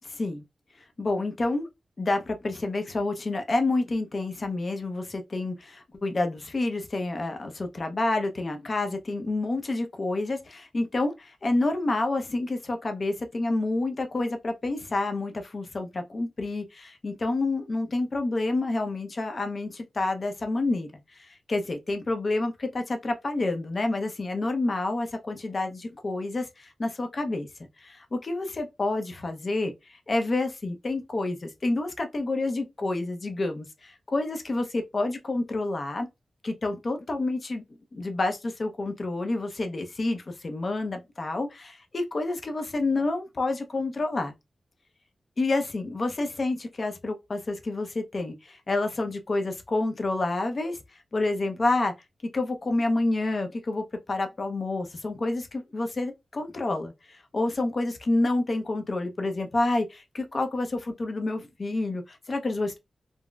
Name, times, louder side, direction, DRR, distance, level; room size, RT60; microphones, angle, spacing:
voice 1, 0.0-0.4 1.0-1.7 2.0-20.9 21.2-27.5 27.8-29.7 30.1-36.1 36.4-37.6 37.9-44.3 45.4-50.8 51.1-51.9 52.3-62.8, left 2 dB, 40° left, 0.5 m, -28 dB
3.8 x 2.0 x 2.2 m
wide cardioid pair, 120°, 0 cm